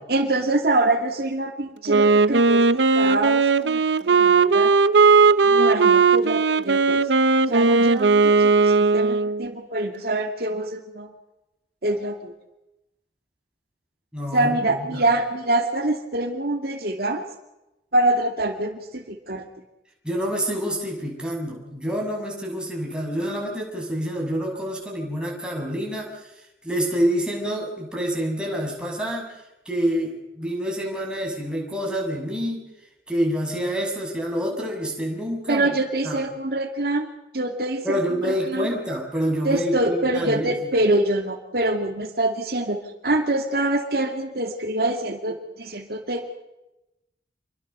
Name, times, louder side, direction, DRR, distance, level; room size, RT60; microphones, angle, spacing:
voice 1, 0.1-4.7 5.4-7.1 7.5-11.1 11.8-12.3 14.3-17.3 17.9-19.4 35.5-37.1 37.3-38.7 39.4-46.4, right 2 dB, 60° right, 3 dB, 2.5 m, -25 dB
Wind instrument woodwind instrument, 1.9-9.5, right 4 dB, 90° right, 0.8 m, -17 dB
voice 2, 14.1-15.0 20.0-29.4 29.6-32.7 33.1-35.7 36.0-36.2 37.8-40.5, equal, 5° right, -1 dB, 6.9 m, -27 dB
28.0 x 23.0 x 6.8 m, 0.94 s
head